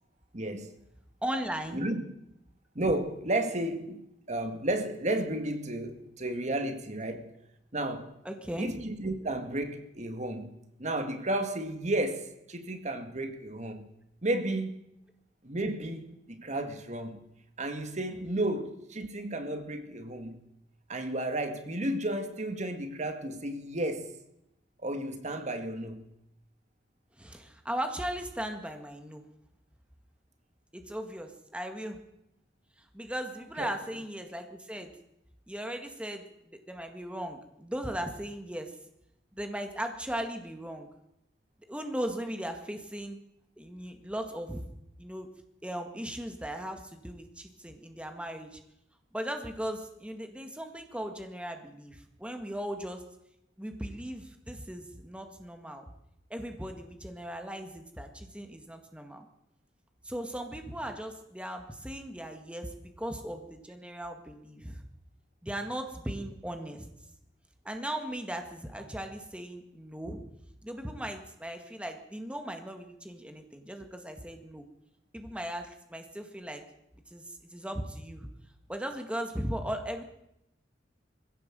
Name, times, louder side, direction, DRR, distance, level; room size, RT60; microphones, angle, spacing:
voice 1, 0.3-0.7 1.7-2.0 2.8-7.3 7.7-8.1 8.6-13.9 14.2-14.8 15.4-17.2 17.6-20.4 20.9-24.1 24.8-26.1 33.6-33.7, right 1 dB, 40° right, 1.9 m, -33 dB
voice 2, 1.2-1.8 8.3-8.8 27.2-29.2 30.7-32.0 32.9-34.9 35.5-38.8 39.4-40.9 41.7-43.2 43.6-44.6 45.0-45.3 45.6-48.6 49.1-53.0 53.6-55.8 56.3-59.2 60.0-64.8 65.4-66.9 67.7-70.2 70.6-74.6 75.1-76.7 77.1-78.3 78.7-80.0, right 1 dB, 5° right, 1.9 m, -37 dB
21.5 x 16.0 x 7.6 m
head